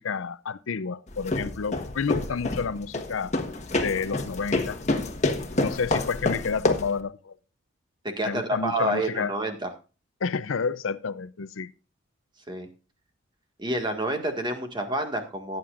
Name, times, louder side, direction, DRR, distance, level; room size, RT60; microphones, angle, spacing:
voice 1, 0.0-3.3 3.8-4.8 5.6-7.3 8.2-9.3 10.2-11.7, left 5 dB, 85° left, 0.5 m, -30 dB
sound 1, 1.1-7.0, left 2 dB, 35° left, 1.3 m, -28 dB
voice 2, 8.0-9.7 12.5-12.7 13.6-15.6, right 1 dB, 25° right, 1.8 m, -28 dB
17.0 x 8.9 x 2.5 m
head